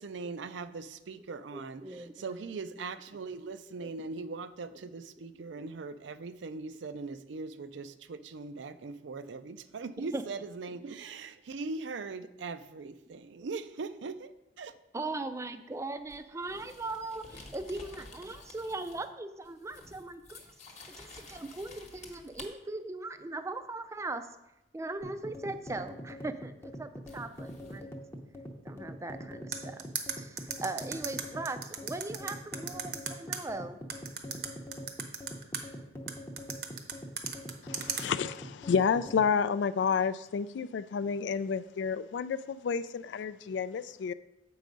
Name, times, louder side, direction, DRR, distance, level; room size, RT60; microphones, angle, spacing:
voice 1, 0.0-14.7, right 4 dB, 80° right, 12 dB, 0.5 m, -40 dB
voice 2, 1.5-2.1 3.8-3.9 10.0-10.2 14.9-20.4 20.9-24.2 24.7-27.9 28.6-29.9 30.2-33.8, right 2 dB, 15° right, 10 dB, 0.4 m, -39 dB
sound 1, 16.1-19.1 19.4-22.5 25.7-25.8 27.1-27.8, left 2 dB, 40° left, 1.0 m, -51 dB
sound 2, 25.0-39.3, equal, 15° left, 0.7 m, -44 dB
sound 3, 29.5-33.4 33.9-35.6 36.1-38.0, right 7 dB, 60° right, 0.8 m, -35 dB
voice 3, 37.7-44.1, left 6 dB, 70° left, 14 dB, 0.3 m, -30 dB
7.6 x 4.7 x 5.2 m, 0.92 s
head